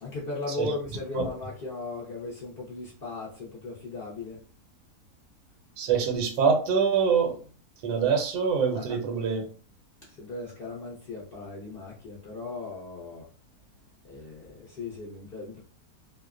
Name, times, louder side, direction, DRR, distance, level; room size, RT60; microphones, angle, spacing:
voice 1, 0.0-4.4 8.7-8.8 10.0-13.3 14.0-15.6, left 3 dB, 60° left, 0.6 m, -37 dB
voice 2, 5.8-7.4 7.8-9.4, right 6 dB, 80° right, 1.2 m, -25 dB
2.7 x 2.1 x 2.3 m
omnidirectional pair, 1.7 m